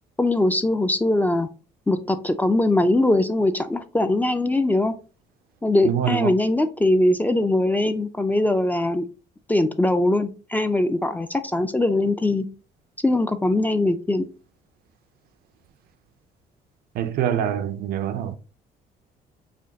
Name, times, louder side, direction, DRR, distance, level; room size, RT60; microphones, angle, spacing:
voice 1, 0.2-1.5 1.9-4.9 5.6-9.1 9.5-12.5 13.0-14.2, left 2 dB, 10° left, 0.3 m, -21 dB
voice 2, 5.8-6.3 17.0-18.3, right 10 dB, 65° right, 0.4 m, -25 dB
5.0 x 2.3 x 2.7 m
cardioid pair, 110°, 17 cm